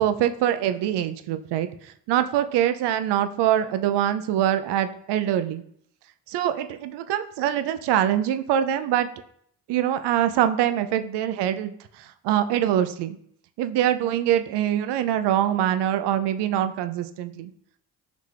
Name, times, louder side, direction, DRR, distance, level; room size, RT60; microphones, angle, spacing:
voice 1, 0.0-5.6 6.3-9.1 9.7-13.2 13.6-17.5, right 11 dB, 75° right, 10 dB, 0.5 m, -24 dB
4.0 x 3.0 x 3.2 m, 0.65 s
supercardioid pair, 55°, 42 cm